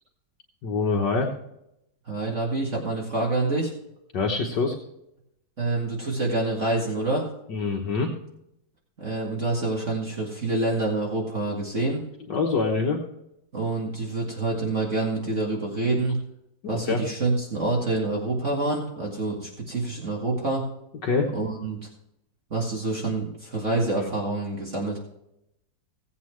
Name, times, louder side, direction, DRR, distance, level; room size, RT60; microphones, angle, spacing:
voice 1, 0.6-1.3 4.1-4.8 7.5-8.1 12.3-13.0 16.6-17.0 21.0-21.3, left 4 dB, 70° left, 0 dB, 1.9 m, -25 dB
voice 2, 2.1-3.7 5.6-7.3 9.0-12.0 13.5-16.2 16.7-20.7 21.3-21.9 22.5-25.0, right 2 dB, 40° right, -2 dB, 2.4 m, -27 dB
17.5 x 8.3 x 3.2 m, 0.81 s
omnidirectional pair, 2.0 m